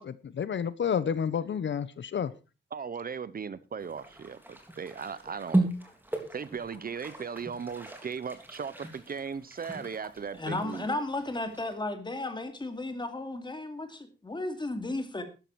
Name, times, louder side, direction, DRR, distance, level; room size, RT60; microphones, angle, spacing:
voice 1, 0.0-2.3, left 7 dB, 65° left, 0.8 m, -30 dB
voice 2, 2.7-5.7 6.3-10.9, right 6 dB, 45° right, 0.8 m, -37 dB
sound 1, 3.8-11.7, right 2 dB, 10° right, 3.2 m, -36 dB
voice 3, 10.4-15.2, left 2 dB, 20° left, 2.5 m, -34 dB
13.0 x 11.0 x 4.7 m
wide cardioid pair, 135°, 20 cm